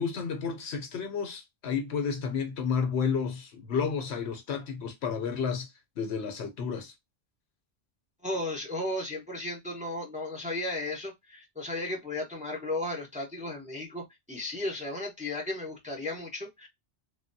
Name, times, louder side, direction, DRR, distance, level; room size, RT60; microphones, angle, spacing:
voice 1, 0.0-6.9, left 6 dB, 70° left, 0.9 m, -31 dB
voice 2, 8.2-16.7, left 2 dB, 5° right, 0.7 m, -35 dB
3.3 x 2.2 x 2.6 m
omnidirectional pair, 1.2 m